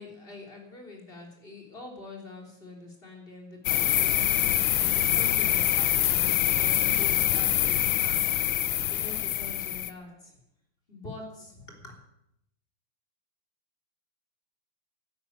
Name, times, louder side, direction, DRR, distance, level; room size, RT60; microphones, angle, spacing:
voice 1, 0.0-8.3 8.6-10.4 10.9-12.0, left 2 dB, 25° left, 1 dB, 3.9 m, -45 dB
sound 1, 3.7-9.9, left 12 dB, 75° left, 1.6 m, -25 dB
12.5 x 10.5 x 9.1 m, 0.81 s
omnidirectional pair, 2.2 m